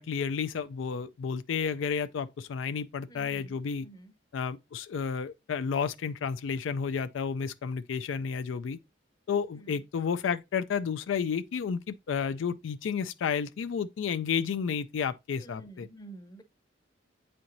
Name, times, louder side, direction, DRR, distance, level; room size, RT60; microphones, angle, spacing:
voice 1, 0.0-3.9 4.3-8.8 9.3-15.9, left 6 dB, 80° left, 0.4 m, -31 dB
voice 2, 3.1-4.1 9.5-9.8 15.4-16.4, right 2 dB, 20° left, 0.7 m, -50 dB
8.5 x 4.4 x 2.6 m
head